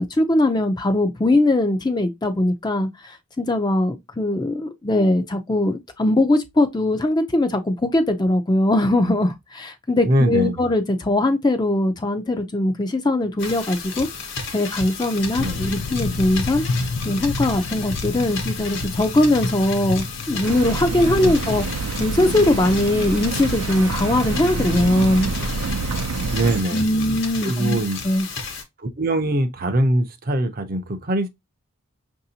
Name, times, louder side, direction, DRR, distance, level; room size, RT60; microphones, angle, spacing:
voice 1, 0.0-14.1 14.5-21.6 22.0-25.3 26.7-28.3, left 1 dB, 20° left, 0.5 m, -21 dB
voice 2, 10.0-10.7 15.4-15.7 21.2-21.6 26.3-27.2 27.4-28.0 28.8-31.3, right 1 dB, 40° right, 0.6 m, -23 dB
sound 1, 13.4-28.6, left 4 dB, 55° left, 1.1 m, -33 dB
sound 2, 15.4-26.9, left 3 dB, 80° left, 0.5 m, -32 dB
sound 3, 20.4-26.6, right 3 dB, 85° right, 0.6 m, -27 dB
5.8 x 2.7 x 2.7 m
head